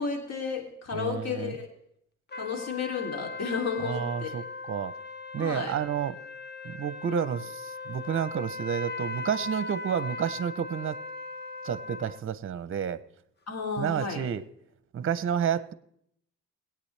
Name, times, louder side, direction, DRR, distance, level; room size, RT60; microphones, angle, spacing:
voice 1, 0.0-1.7 2.4-4.3 5.4-5.8 13.5-14.2, left 5 dB, 55° left, 2 dB, 3.0 m, -32 dB
voice 2, 0.9-1.5 3.8-4.9 5.3-6.2 6.6-11.0 11.6-13.0 13.8-14.4 14.9-15.7, right 8 dB, 45° right, 16 dB, 0.7 m, -30 dB
sound 1, 2.3-12.2, left 3 dB, 35° left, 1.1 m, -39 dB
21.5 x 8.8 x 3.3 m, 0.71 s
cardioid pair, 90°, 30 cm